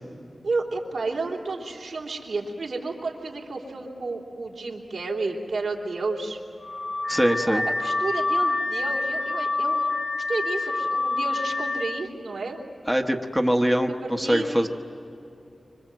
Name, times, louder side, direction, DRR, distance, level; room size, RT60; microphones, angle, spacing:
voice 1, 0.4-6.4 7.5-9.9 10.3-12.6 13.9-14.5, right 3 dB, 80° right, -1 dB, 3.4 m, -31 dB
Car / Alarm, 6.6-12.1, left 3 dB, 35° left, 1.4 m, -27 dB
voice 2, 7.1-7.6 12.9-14.7, equal, ahead, 3 dB, 1.1 m, -23 dB
25.5 x 25.5 x 7.8 m, 3.0 s
wide cardioid pair, 120°, 0 cm